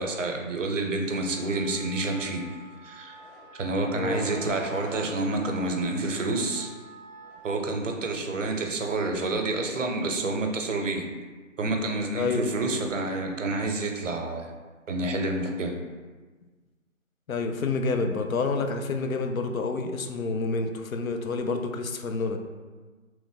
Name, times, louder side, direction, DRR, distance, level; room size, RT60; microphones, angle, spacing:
voice 1, 0.0-2.4 2.8-3.2 3.6-6.7 7.4-11.0 11.6-14.5 14.9-15.7, right 2 dB, 70° right, 3 dB, 0.6 m, -28 dB
Wind instrument woodwind instrument, 1.0-7.4, right 1 dB, 60° left, 1.3 m, -48 dB
sound 1, 3.1-3.5 4.0-5.1 5.6-6.7 7.2-7.7, equal, 40° left, 0.9 m, -45 dB
voice 2, 3.9-4.3 12.1-12.5 17.3-22.4, left 3 dB, 90° left, 6 dB, 0.5 m, -28 dB
3.0 x 2.1 x 3.4 m, 1.3 s
figure-of-eight pair, 160°, 40 cm